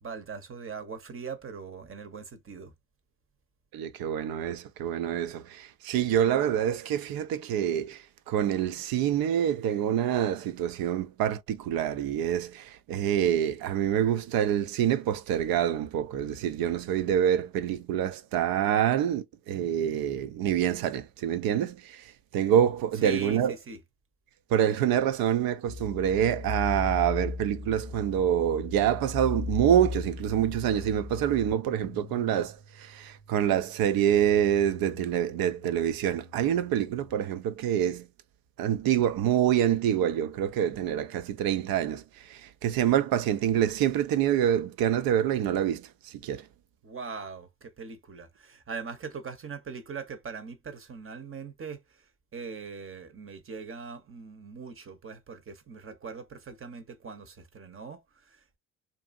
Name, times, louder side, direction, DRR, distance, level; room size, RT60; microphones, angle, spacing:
voice 1, 0.0-2.7 23.0-23.8 46.8-58.6, right 5 dB, 25° right, 0.8 m, -41 dB
voice 2, 3.7-23.5 24.5-38.1 38.6-46.5, right 10 dB, 50° right, 0.5 m, -26 dB
sound 1, 25.7-37.1, left 4 dB, 20° left, 0.8 m, -39 dB
2.6 x 2.5 x 2.4 m
hypercardioid pair, 55°, 48 cm